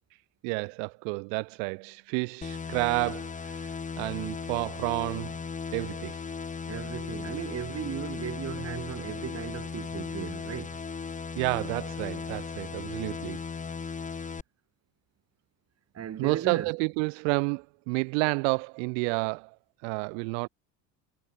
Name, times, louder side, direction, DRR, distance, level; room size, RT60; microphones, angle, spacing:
voice 1, 0.4-5.4 5.7-6.2 11.4-13.4 16.2-19.5 19.8-20.5, right 40 dB or more, 80° right, 3.2 m, -30 dB
sound 1, 2.4-14.4, left 5 dB, 20° left, 1.7 m, -37 dB
voice 2, 6.7-10.8 15.9-16.7, right 9 dB, 40° right, 7.4 m, -36 dB
supercardioid pair, 115°, 39 cm